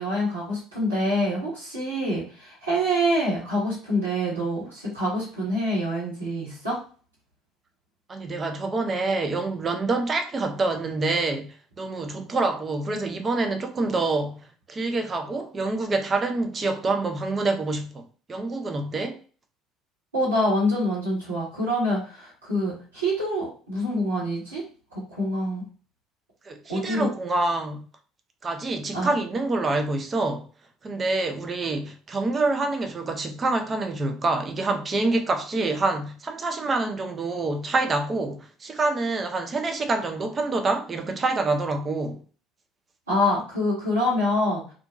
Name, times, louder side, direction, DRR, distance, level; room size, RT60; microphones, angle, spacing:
voice 1, 0.0-6.8 20.1-24.6 24.9-25.6 26.7-27.1 28.9-29.1 43.1-44.6, equal, 85° right, 1.2 m, -26 dB
voice 2, 8.1-14.4 14.7-19.2 26.4-27.8 28.4-30.5 30.8-42.2, right 3 dB, 30° right, 0.5 m, -26 dB
2.7 x 2.4 x 2.4 m
figure-of-eight pair, 60°, 0 cm